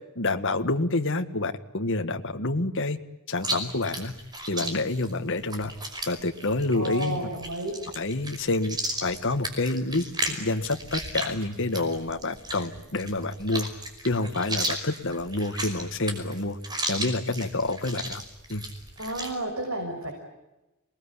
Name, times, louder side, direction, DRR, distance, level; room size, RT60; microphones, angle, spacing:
voice 1, 0.2-3.0 3.3-4.1 4.5-5.7 6.1-7.3 8.0-13.7 14.0-16.6 16.9-18.2 18.5-18.6, left 2 dB, 55° left, 6 dB, 1.8 m, -28 dB
Chewing mastication, 3.4-19.3, right 1 dB, 20° right, 5.4 m, -35 dB
voice 2, 6.7-7.7 19.0-20.1, right 1 dB, 65° right, 2 dB, 6.3 m, -31 dB
28.0 x 20.5 x 10.0 m, 1.0 s
head